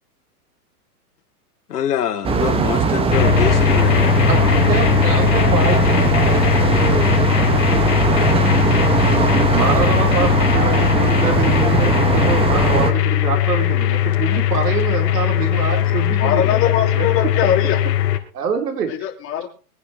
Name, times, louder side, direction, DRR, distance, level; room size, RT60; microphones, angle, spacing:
voice 1, 1.7-4.2, left 10 dB, 80° left, 3.1 m, -24 dB
sound 1, 2.2-12.9, right 5 dB, 10° right, 1.3 m, -19 dB
sound 2, 3.1-18.2, left 13 dB, 50° left, 4.2 m, -19 dB
voice 2, 4.3-6.4 6.8-7.1 9.5-16.6 17.0-17.1 18.3-18.9, right 6 dB, 85° right, 4.5 m, -25 dB
voice 3, 16.2-17.8 18.9-19.5, left 9 dB, 30° left, 4.5 m, -21 dB
25.5 x 10.0 x 3.2 m
hypercardioid pair, 150°, 46 cm